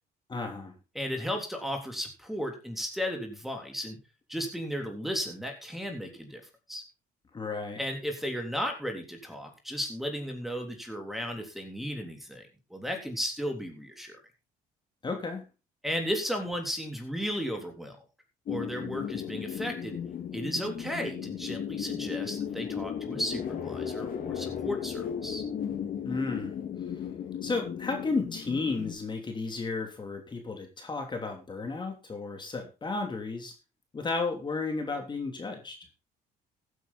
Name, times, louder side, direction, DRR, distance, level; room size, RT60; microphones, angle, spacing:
voice 1, 0.3-0.7 7.3-7.8 15.0-15.5 26.0-26.6 27.4-33.5 33.9-35.8, left 3 dB, 25° left, 4 dB, 3.0 m, -33 dB
voice 2, 1.0-4.0 4.3-6.4 6.7-6.8 7.8-14.2 15.8-18.0 18.5-20.0 20.3-25.4, equal, ahead, 4 dB, 3.5 m, -34 dB
sound 1, 18.5-28.9, left 8 dB, 55° left, 3.4 m, -35 dB
15.0 x 9.3 x 4.1 m, 0.28 s
cardioid pair, 110°, 17 cm